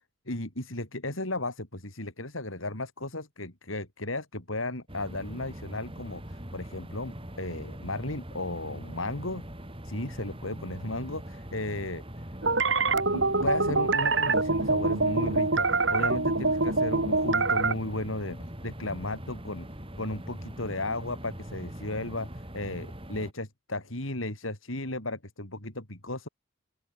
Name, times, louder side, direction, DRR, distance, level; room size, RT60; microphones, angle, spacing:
voice 1, 0.3-9.4 9.8-12.0 13.1-19.7 20.0-26.3, left 2 dB, 85° left, 6.1 m, -35 dB
sound 1, 4.9-23.3, equal, 25° right, 4.9 m, -42 dB
sound 2, 12.4-17.7, right 3 dB, 65° right, 4.0 m, -25 dB
open air
head